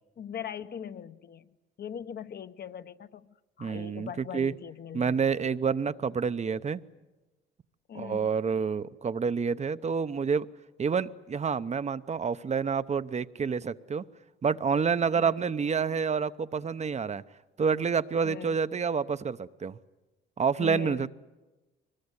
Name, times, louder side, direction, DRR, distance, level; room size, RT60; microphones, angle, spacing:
voice 1, 0.2-1.5 1.8-5.6 7.9-8.3 15.2-15.5 18.2-18.6 20.6-21.1, left 8 dB, 55° left, 1.0 m, -41 dB
voice 2, 3.6-4.5 4.9-6.8 7.9-10.5 10.8-14.1 14.4-17.2 17.6-19.8 20.4-21.1, right 6 dB, 35° right, 0.8 m, -28 dB
23.5 x 21.0 x 9.8 m
cardioid pair, 90°, 20 cm